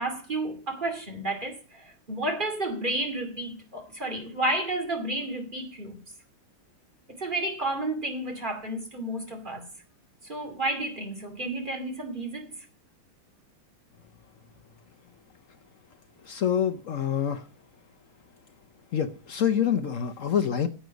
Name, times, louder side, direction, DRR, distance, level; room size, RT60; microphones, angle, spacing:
voice 1, 0.0-6.0 7.2-9.7 10.2-12.5, right 2 dB, 25° right, 2.5 m, -31 dB
voice 2, 16.2-17.4 18.9-20.7, left 8 dB, 55° left, 0.9 m, -26 dB
10.5 x 7.8 x 7.0 m
omnidirectional pair, 2.1 m